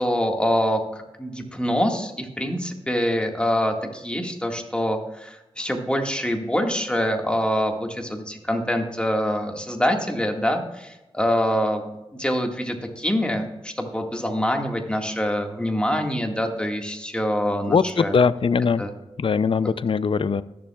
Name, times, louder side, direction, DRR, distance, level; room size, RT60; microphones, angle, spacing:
voice 1, 0.0-11.9 12.2-18.1 18.8-18.9 19.6-19.7, equal, 10° left, 2 dB, 1.8 m, -25 dB
voice 2, 17.7-18.8 19.2-20.4, left 5 dB, 55° left, 16 dB, 0.5 m, -21 dB
21.0 x 7.2 x 2.4 m, 0.97 s
cardioid pair, 45°, 11 cm